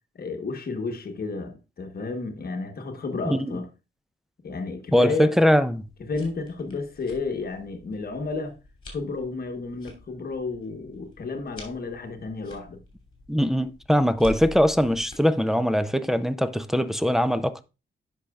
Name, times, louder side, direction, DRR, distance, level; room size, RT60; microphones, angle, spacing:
voice 1, 0.1-3.7 4.4-5.4 6.1-8.6 8.9-12.8, left 3 dB, 50° left, 1.1 m, -32 dB
voice 2, 4.9-5.8 13.3-17.6, equal, ahead, 0.4 m, -21 dB
sound 1, 5.8-15.2, left 1 dB, 25° left, 2.8 m, -46 dB
10.0 x 5.7 x 2.3 m
wide cardioid pair, 140°, 21 cm